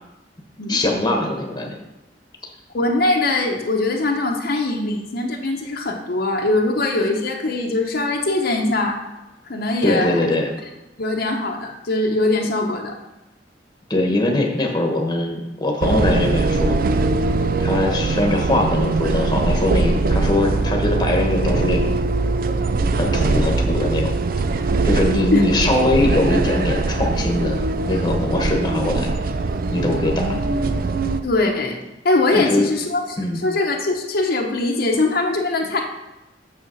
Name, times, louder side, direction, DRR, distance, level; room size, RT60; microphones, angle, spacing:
voice 1, 0.7-1.8 9.8-10.5 13.9-16.8 17.6-22.0 23.0-24.1 24.8-29.1 29.7-30.4 32.3-32.7 33.2-33.4, left 2 dB, 25° left, 1 dB, 1.2 m, -21 dB
voice 2, 2.7-9.0 9.4-10.2 11.0-12.9 25.3-25.4 31.2-31.8 32.0-33.0 33.4-35.8, left 2 dB, 60° left, 1 dB, 1.0 m, -21 dB
sound 1, 15.8-31.2, right 3 dB, 55° right, 0.5 m, -21 dB
7.0 x 6.4 x 5.6 m, 0.97 s
head